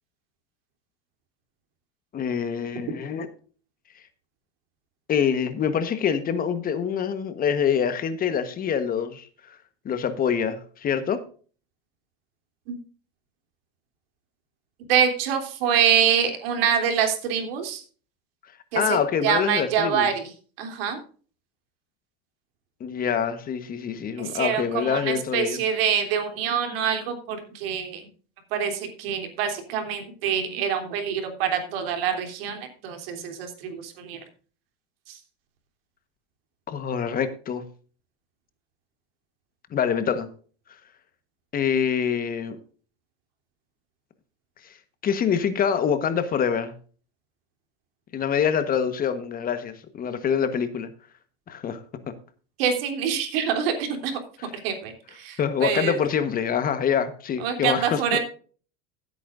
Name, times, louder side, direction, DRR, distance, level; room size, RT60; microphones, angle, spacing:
voice 1, 2.1-3.3 5.1-9.6 9.8-11.2 18.7-20.1 22.8-25.6 36.7-37.6 39.7-40.3 41.5-42.6 45.0-46.7 48.1-50.9 51.5-51.8 55.4-58.2, left 7 dB, 30° left, 10 dB, 1.2 m, -25 dB
voice 2, 14.9-17.8 18.7-20.3 20.6-21.0 24.2-28.0 28.5-34.2 35.1-35.2 52.6-54.2 54.6-56.0 57.4-58.2, right 8 dB, 75° right, 4 dB, 3.2 m, -25 dB
16.0 x 8.5 x 2.6 m, 0.40 s
supercardioid pair, 125°, 30 cm